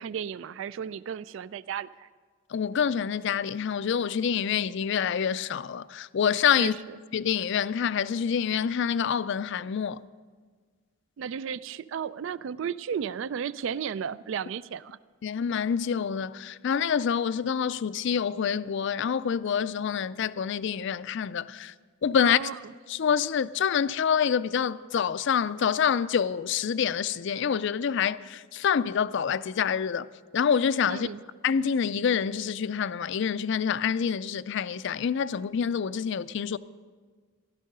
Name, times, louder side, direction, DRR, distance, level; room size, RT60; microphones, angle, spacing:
voice 1, 0.0-2.1 6.6-7.0 11.2-15.0 22.2-22.6 30.9-31.2, right 7 dB, 65° right, 0.3 m, -34 dB
voice 2, 2.5-6.8 7.1-10.0 15.2-21.7 22.0-22.4 22.9-30.1 30.3-31.1 31.4-36.6, left 7 dB, 60° left, 0.4 m, -27 dB
16.0 x 12.0 x 5.4 m
head